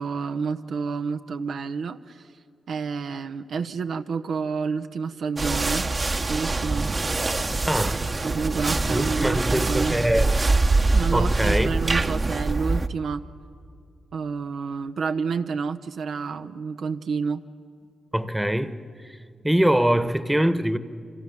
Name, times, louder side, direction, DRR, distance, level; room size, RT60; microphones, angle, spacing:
voice 1, 0.0-2.3 2.7-5.9 6.3-6.9 8.2-10.0 10.9-13.2 14.1-17.4, right 5 dB, 75° right, 0.9 m, -29 dB
sound 1, 5.4-12.9, right 3 dB, 35° right, 1.1 m, -24 dB
voice 2, 7.7-8.1 8.9-10.3 11.1-11.7 18.1-18.8 19.4-20.8, right 1 dB, 5° right, 1.3 m, -23 dB
29.5 x 26.0 x 7.3 m
cardioid pair, 60°, 0 cm